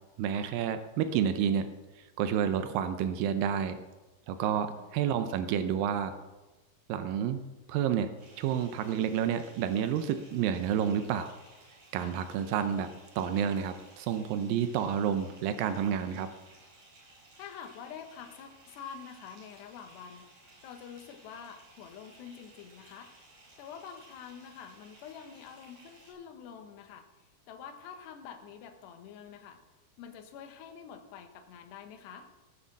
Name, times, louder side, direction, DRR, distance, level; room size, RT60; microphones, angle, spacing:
voice 1, 0.2-1.7 2.0-3.8 4.3-6.1 6.9-11.3 11.9-12.9 13.2-16.3, right 8 dB, 90° right, 9 dB, 2.0 m, -30 dB
voice 2, 4.4-4.9 12.0-12.2 17.4-20.3 20.6-23.1 23.6-27.1 27.5-29.6 30.0-32.3, left 7 dB, 75° left, 6 dB, 3.4 m, -47 dB
Bathtub (filling or washing) / Fill (with liquid), 8.2-26.1, right 2 dB, 50° right, 5.9 m, -58 dB
17.5 x 7.1 x 7.3 m, 1.1 s
omnidirectional pair, 5.0 m